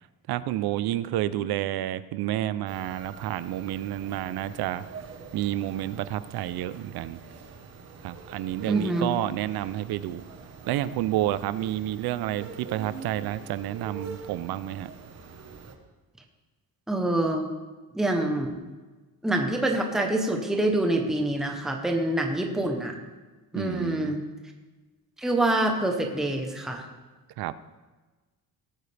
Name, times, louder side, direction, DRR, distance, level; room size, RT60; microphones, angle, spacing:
voice 1, 0.3-4.8 5.3-7.2 8.0-10.2 10.7-14.9 23.5-24.1 27.4-27.5, right 13 dB, 75° right, 15 dB, 0.6 m, -30 dB
sound 1, 2.7-15.7, right 5 dB, 40° right, 1.2 m, -44 dB
voice 2, 8.7-9.1 16.9-17.5 17.9-18.6 19.2-23.0 23.5-24.3 25.2-26.8, right 1 dB, ahead, 2 dB, 0.9 m, -26 dB
18.5 x 8.8 x 3.4 m, 1.3 s
cardioid pair, 175°, 38 cm